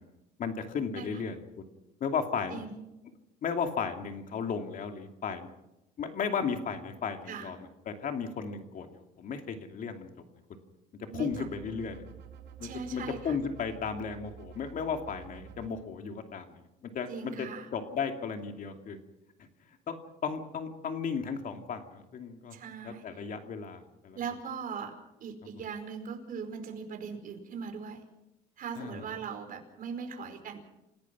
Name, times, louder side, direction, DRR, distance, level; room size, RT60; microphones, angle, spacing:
voice 1, 0.4-1.4 2.0-2.6 3.4-5.5 6.0-7.6 7.9-10.1 11.0-12.0 12.6-19.0 19.9-20.0 20.2-22.6 22.8-24.2 28.8-29.0, left 6 dB, 55° left, 5 dB, 2.6 m, -35 dB
voice 2, 2.5-2.8 7.3-7.5 11.1-11.5 12.6-13.4 17.1-17.7 22.5-23.0 24.1-24.9 25.2-28.0 28.6-30.6, right 6 dB, 55° right, 4 dB, 4.9 m, -39 dB
sound 1, 11.3-15.7, right 8 dB, 75° right, 3.1 m, -49 dB
28.5 x 17.5 x 6.1 m, 0.92 s
cardioid pair, 110°, 17 cm